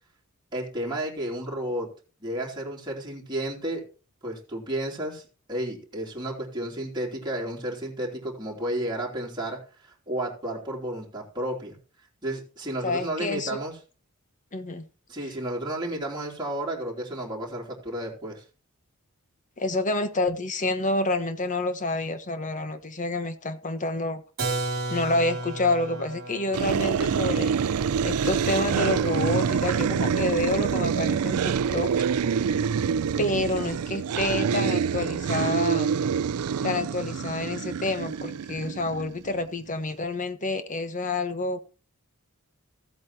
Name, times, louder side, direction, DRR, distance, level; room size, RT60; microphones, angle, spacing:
voice 1, 0.5-1.9 2.2-3.8 4.2-5.2 5.5-11.8 12.2-13.8 15.1-18.4, right 1 dB, 20° right, 3.1 m, -32 dB
voice 2, 12.8-13.6 14.5-14.8 19.6-24.2 24.9-27.5 28.0-31.9 33.2-35.9 36.6-41.6, left 2 dB, 35° left, 1.1 m, -28 dB
Keyboard (musical), 24.4-30.0, right 2 dB, 45° right, 2.4 m, -35 dB
sound 1, 26.5-39.4, right 6 dB, 80° right, 0.4 m, -26 dB
15.0 x 8.5 x 2.9 m
head